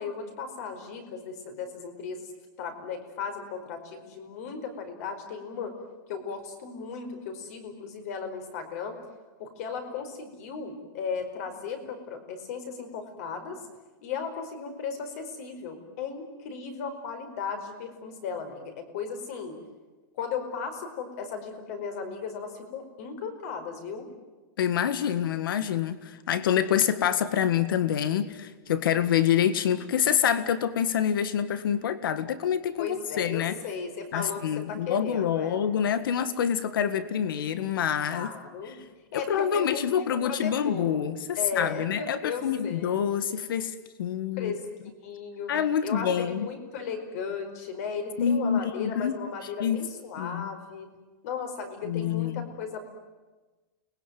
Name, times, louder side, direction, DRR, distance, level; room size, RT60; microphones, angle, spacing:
voice 1, 0.0-2.3 2.6-5.7 6.1-9.0 9.4-13.6 14.0-19.6 20.1-24.1 32.8-35.6 38.1-38.8 39.1-41.1 41.3-43.0 44.4-44.6 45.0-45.5 45.8-50.9 51.2-52.9, left 5 dB, 45° left, 7 dB, 5.0 m, -36 dB
voice 2, 24.6-33.6 34.1-38.3 38.7-38.8 39.1-44.6 45.5-46.5 48.2-49.2 49.6-49.8 50.2-50.5 51.8-52.5, left 9 dB, 85° left, 13 dB, 1.7 m, -26 dB
29.5 x 21.0 x 9.4 m, 1.2 s
supercardioid pair, 175°, 11 cm